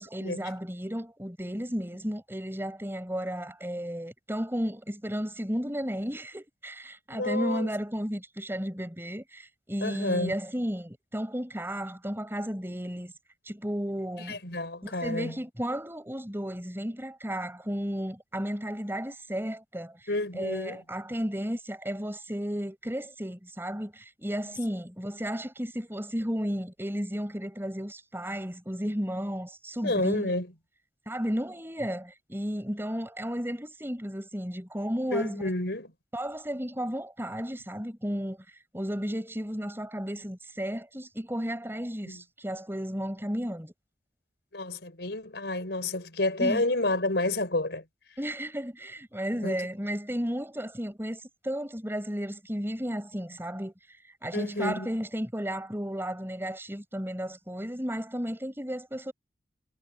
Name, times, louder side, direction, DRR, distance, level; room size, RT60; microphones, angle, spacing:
voice 1, 0.0-13.1 13.5-14.4 14.8-30.3 31.1-35.4 36.1-38.4 38.7-43.7 46.4-46.6 48.2-53.7 54.2-59.1, equal, 15° right, 6.6 m, -33 dB
voice 2, 7.1-7.7 9.8-10.3 14.3-15.4 20.1-20.8 29.8-30.5 35.1-35.9 42.1-42.2 44.5-47.8 49.4-49.6 54.3-54.9, left 2 dB, 70° left, 5.2 m, -30 dB
head